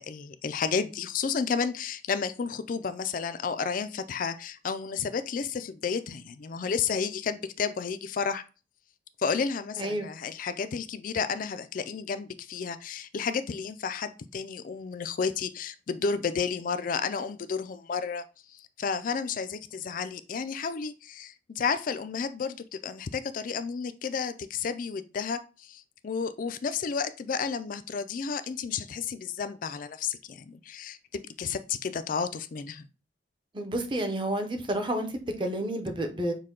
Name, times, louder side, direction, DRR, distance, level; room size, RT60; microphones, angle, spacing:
voice 1, 0.0-8.4 9.2-32.9, left 5 dB, 45° left, 0.4 m, -32 dB
voice 2, 9.8-10.1 33.5-36.3, right 1 dB, 25° right, 0.7 m, -30 dB
6.5 x 2.2 x 3.7 m
head